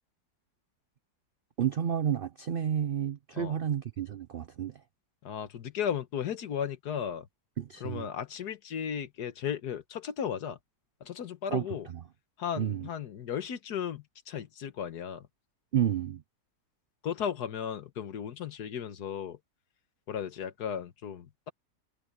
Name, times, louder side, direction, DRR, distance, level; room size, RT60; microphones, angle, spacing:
voice 1, 1.6-4.8 7.6-8.1 11.5-11.6 11.9-12.0 12.6-12.9 15.7-16.2, right 9 dB, 75° right, 0.5 m, -30 dB
voice 2, 5.2-7.3 7.8-10.6 11.0-11.9 12.4-15.3 17.0-19.4 20.1-21.5, left 8 dB, 75° left, 1.7 m, -35 dB
omnidirectional pair, 1.7 m